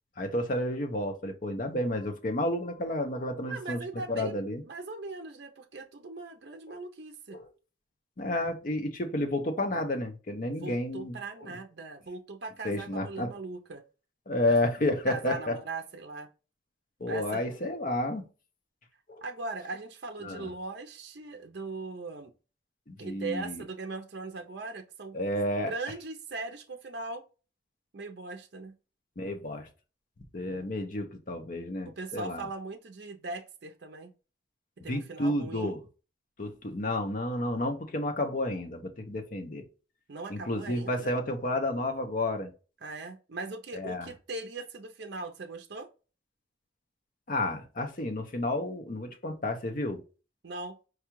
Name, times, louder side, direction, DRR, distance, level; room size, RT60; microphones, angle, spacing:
voice 1, 0.2-4.6 6.7-6.8 7.3-7.5 8.2-11.5 12.6-13.3 14.3-15.5 17.0-18.2 19.1-19.2 20.2-20.5 22.9-23.6 25.1-25.7 29.2-29.7 30.3-32.5 34.9-35.8 36.4-39.6 40.3-42.5 43.7-44.1 47.3-50.0, left 1 dB, 45° left, 0.6 m, -31 dB
voice 2, 3.5-7.4 10.6-13.8 14.5-14.6 15.1-16.3 17.1-17.5 19.2-22.3 23.0-25.2 25.7-27.2 27.9-28.7 30.5-30.7 32.0-34.1 34.8-35.7 40.1-41.1 42.8-45.9 50.4-50.8, right 3 dB, 60° right, 0.5 m, -39 dB
4.7 x 2.3 x 3.0 m
head